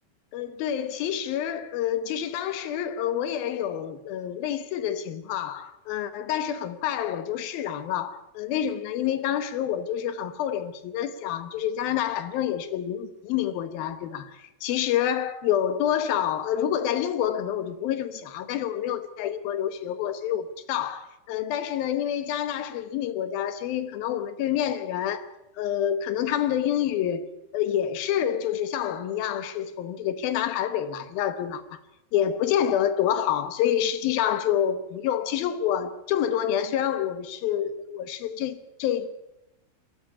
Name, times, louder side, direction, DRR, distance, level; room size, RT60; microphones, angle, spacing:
voice 1, 0.3-25.3 25.6-27.3 27.5-31.8 32.1-39.1, left 10 dB, 70° left, 2.5 m, -28 dB
21.5 x 13.5 x 9.8 m
omnidirectional pair, 5.2 m